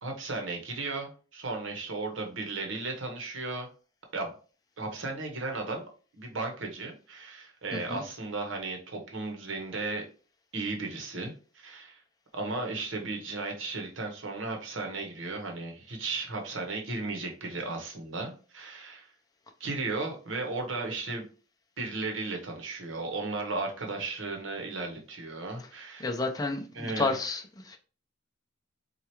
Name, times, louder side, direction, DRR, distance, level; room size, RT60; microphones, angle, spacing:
voice 1, 0.0-3.7 4.1-4.3 4.8-5.8 6.1-10.0 10.5-12.0 12.3-19.1 19.6-21.2 21.8-26.2 26.7-27.1, right 3 dB, 80° right, 0.9 m, -35 dB
voice 2, 7.7-8.0 26.0-27.8, left 3 dB, 20° left, 0.5 m, -31 dB
4.4 x 2.3 x 2.9 m
head